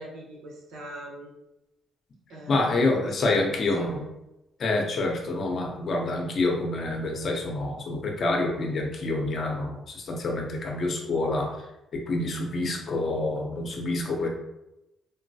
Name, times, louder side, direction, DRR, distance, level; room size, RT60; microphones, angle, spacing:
voice 1, 0.0-1.3 2.3-3.1 3.7-4.0, right 1 dB, 85° right, -3 dB, 0.9 m, -41 dB
voice 2, 2.5-4.0 4.6-11.5 12.1-14.3, left 2 dB, 55° left, 1 dB, 0.7 m, -27 dB
3.8 x 2.1 x 2.7 m, 0.91 s
cardioid pair, 90°, 0 cm